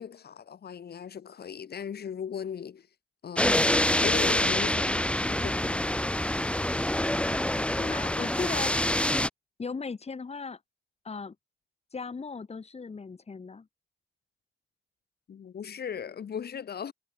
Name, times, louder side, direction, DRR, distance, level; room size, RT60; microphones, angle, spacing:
voice 1, 0.0-2.9 3.2-5.8 15.3-16.9, left 8 dB, 55° left, 6.8 m, -38 dB
sound 1, 3.4-9.3, left 1 dB, 5° left, 2.0 m, -26 dB
voice 2, 7.6-8.7 9.6-10.6 11.0-11.3 11.9-13.7, left 4 dB, 30° left, 6.0 m, -37 dB
cardioid pair, 90°, 20 cm